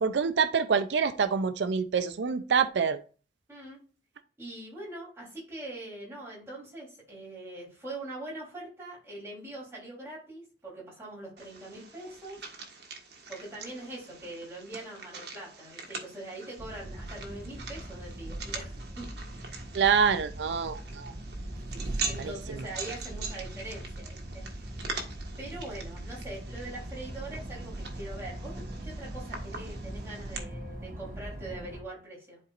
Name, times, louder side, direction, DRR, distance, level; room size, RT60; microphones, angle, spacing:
voice 1, 0.0-3.0 19.7-21.1 22.2-22.3, right 6 dB, 85° right, 0.5 m, -26 dB
voice 2, 3.5-3.8 4.4-12.4 13.3-19.7 22.0-24.7 25.4-32.4, right 2 dB, 15° right, 3.4 m, -43 dB
sound 1, 11.4-30.4, right 4 dB, 70° right, 1.4 m, -43 dB
sound 2, 16.6-31.8, right 1 dB, 50° right, 1.4 m, -40 dB
11.0 x 4.4 x 2.5 m
head